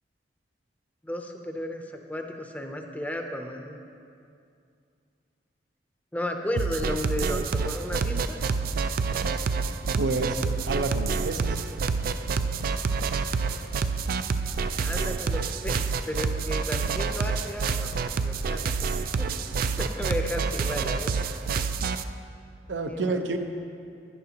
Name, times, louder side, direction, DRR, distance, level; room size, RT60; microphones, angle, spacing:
voice 1, 1.0-3.8 6.1-8.4 14.8-19.3 19.8-21.1 22.9-23.2, left 1 dB, 10° left, 3 dB, 0.6 m, -34 dB
sound 1, 6.6-22.0, right 5 dB, 55° right, 0.3 m, -28 dB
voice 2, 9.7-10.4 10.7-11.6 22.7-23.4, right 3 dB, 90° right, 6 dB, 0.6 m, -29 dB
10.5 x 9.9 x 2.9 m, 2.4 s
head